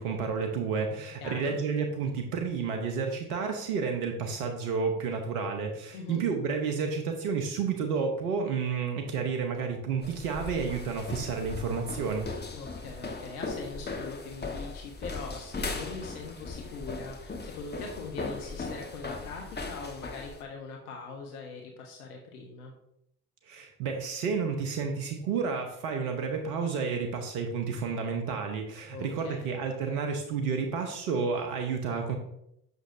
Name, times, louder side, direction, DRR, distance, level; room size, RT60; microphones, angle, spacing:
voice 1, 0.0-12.3 23.5-32.2, right 5 dB, 85° right, 4 dB, 1.0 m, -31 dB
voice 2, 1.2-1.5 5.9-6.2 12.5-22.7 28.9-29.6, left 4 dB, 80° left, 0 dB, 1.0 m, -42 dB
sound 1, 10.0-20.4, left 3 dB, 20° left, 1.2 m, -38 dB
8.0 x 6.2 x 2.6 m, 0.77 s
hypercardioid pair, 55°, 44 cm